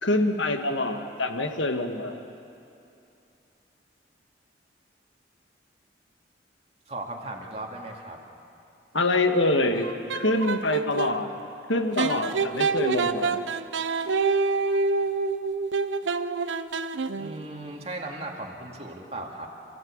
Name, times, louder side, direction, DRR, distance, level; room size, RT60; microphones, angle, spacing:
voice 1, 0.0-2.2 8.9-11.3 11.7-13.4, left 2 dB, 85° left, 5 dB, 1.8 m, -25 dB
voice 2, 6.9-8.2 17.2-19.5, right 2 dB, 35° right, 0 dB, 2.3 m, -37 dB
sound 1, 9.7-11.2 12.0-17.4, right 4 dB, 85° right, 0.8 m, -27 dB
28.5 x 15.5 x 8.8 m, 2.7 s
head